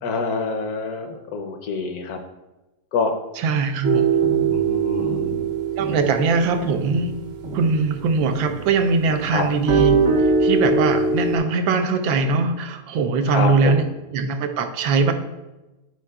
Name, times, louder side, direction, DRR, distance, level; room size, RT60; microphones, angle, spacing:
voice 1, 0.0-2.2 2.9-3.1 4.5-5.5 9.3-9.4 13.3-13.9, left 4 dB, 70° left, 5 dB, 0.9 m, -26 dB
voice 2, 3.4-4.1 5.8-7.1 7.5-10.0 10.4-13.8 14.1-15.1, right 4 dB, 90° right, 7 dB, 1.4 m, -21 dB
sound 1, 3.8-8.7 9.0-11.4, right 4 dB, 60° right, 0.7 m, -22 dB
11.0 x 4.8 x 2.3 m, 1.0 s
omnidirectional pair, 2.0 m